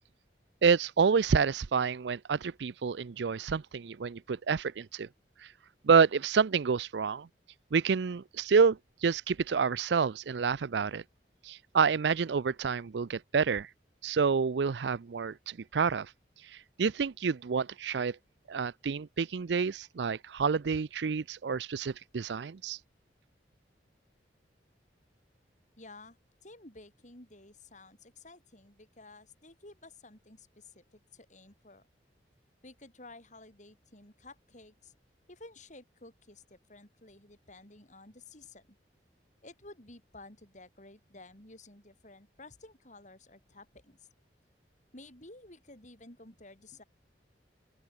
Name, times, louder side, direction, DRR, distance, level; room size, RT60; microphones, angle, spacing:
voice 1, 0.6-5.1 5.8-7.3 7.7-11.0 11.4-13.7 14.0-16.1 16.8-18.2 18.5-22.8, right 5 dB, 75° right, 0.5 m, -28 dB
voice 2, 25.8-26.2 26.4-31.8 32.6-34.9 35.3-38.8 39.4-44.1 44.9-46.8, left 2 dB, 45° left, 6.6 m, -53 dB
open air
head